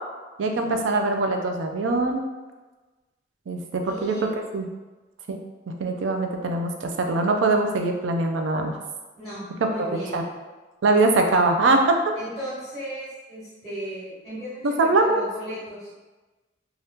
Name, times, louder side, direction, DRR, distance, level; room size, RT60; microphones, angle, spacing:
voice 1, 0.4-2.2 3.5-4.1 4.5-4.7 5.3-5.4 5.8-8.7 9.8-10.2 10.8-12.0 14.6-15.2, right 2 dB, 90° right, 4 dB, 0.4 m, -22 dB
voice 2, 3.8-4.4 9.2-10.2 11.3-11.5 12.1-15.9, equal, 5° left, -10 dB, 1.0 m, -36 dB
2.7 x 2.4 x 3.4 m, 1.2 s
head